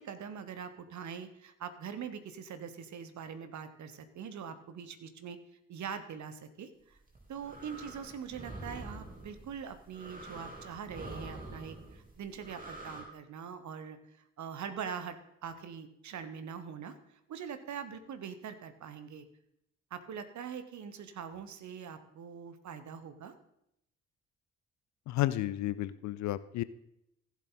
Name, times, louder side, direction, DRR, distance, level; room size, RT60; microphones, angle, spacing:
voice 1, 0.0-5.4 5.7-7.0 7.3-14.0 14.4-15.2 15.4-16.9 17.3-19.2 19.9-23.3, right 7 dB, 45° right, 10 dB, 1.2 m, -43 dB
sound 1, 7.0-13.0, right 2 dB, 20° right, 3.5 m, -46 dB
voice 2, 25.1-26.6, left 15 dB, 50° left, 17 dB, 0.5 m, -32 dB
15.0 x 7.4 x 4.1 m, 0.78 s
figure-of-eight pair, 40°, 38 cm